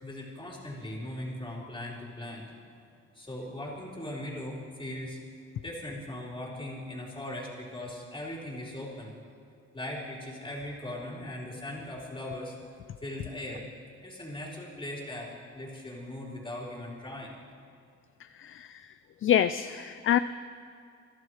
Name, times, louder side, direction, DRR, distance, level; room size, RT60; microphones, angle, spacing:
voice 1, 0.0-2.5 3.1-5.2 5.6-9.1 9.7-12.6 13.0-13.7 14.0-17.4, left 1 dB, 15° left, -5 dB, 4.7 m, -39 dB
voice 2, 18.4-18.9 19.2-20.2, left 10 dB, 45° left, 13 dB, 0.4 m, -26 dB
29.5 x 11.5 x 3.3 m, 2.3 s
cardioid pair, 90°, 30 cm